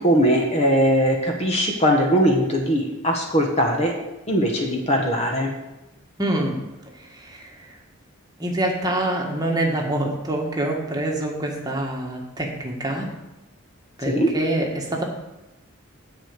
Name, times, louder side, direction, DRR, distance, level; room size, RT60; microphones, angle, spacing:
voice 1, 0.0-3.9 4.3-5.5 14.0-14.3, equal, 30° left, 1 dB, 1.3 m, -20 dB
voice 2, 6.2-6.6 7.0-7.7 8.4-13.1 14.0-15.0, right 1 dB, 20° right, 0 dB, 1.5 m, -26 dB
10.0 x 5.0 x 8.1 m, 0.99 s
head